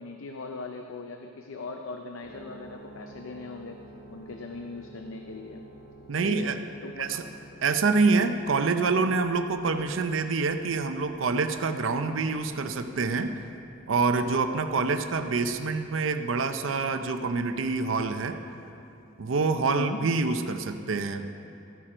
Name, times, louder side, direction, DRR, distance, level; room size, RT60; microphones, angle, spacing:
voice 1, 0.0-3.8 4.1-5.6 6.1-6.5 6.8-7.3 14.7-14.9 19.6-20.0, left 3 dB, 85° left, 4 dB, 0.6 m, -39 dB
sound 1, 2.2-20.6, right 1 dB, 35° left, 1.7 m, -52 dB
voice 2, 6.1-6.6 7.0-7.2 7.6-13.4 13.9-18.4 19.2-21.2, right 4 dB, 75° right, 7 dB, 0.5 m, -26 dB
13.0 x 8.7 x 5.0 m, 2.7 s
head